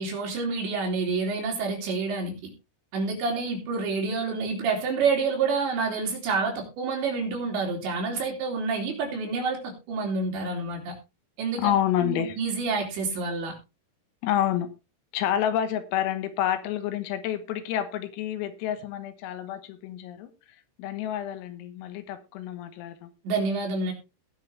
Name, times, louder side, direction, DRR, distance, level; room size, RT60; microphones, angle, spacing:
voice 1, 0.0-2.5 2.9-11.0 11.4-11.7 12.0-13.5 23.3-23.9, right 4 dB, 60° right, 5.0 m, -28 dB
voice 2, 11.6-12.4 14.2-14.7 15.1-20.3 20.8-23.1, left 11 dB, 85° left, 3.9 m, -28 dB
19.0 x 6.4 x 3.4 m
omnidirectional pair, 6.0 m